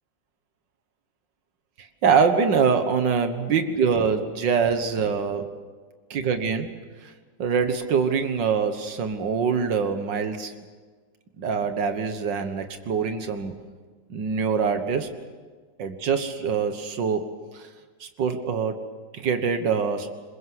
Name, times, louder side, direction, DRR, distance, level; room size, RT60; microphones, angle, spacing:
voice 1, 1.8-5.5 6.1-6.7 7.0-7.1 7.4-10.5 11.4-13.5 14.1-15.1 15.8-17.7 18.0-18.8 19.1-20.1, right 6 dB, 85° right, 8 dB, 2.1 m, -24 dB
22.0 x 21.5 x 7.9 m, 1.5 s
omnidirectional pair, 1.9 m